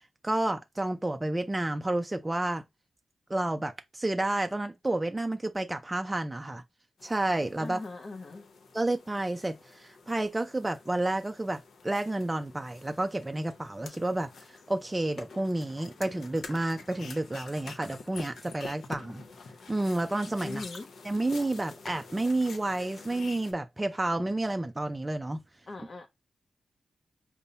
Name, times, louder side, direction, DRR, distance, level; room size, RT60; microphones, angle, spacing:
voice 1, 0.2-2.6 3.3-6.6 7.0-7.8 8.7-14.3 14.7-19.2 19.7-20.6 21.0-25.4, right 2 dB, 15° right, 0.4 m, -30 dB
sound 1, 7.0-23.5, left 4 dB, 80° left, 0.7 m, -48 dB
voice 2, 7.6-8.4 20.4-20.9 25.7-26.1, left 3 dB, 40° left, 0.6 m, -40 dB
5.3 x 2.0 x 2.7 m
wide cardioid pair, 120°, 0 cm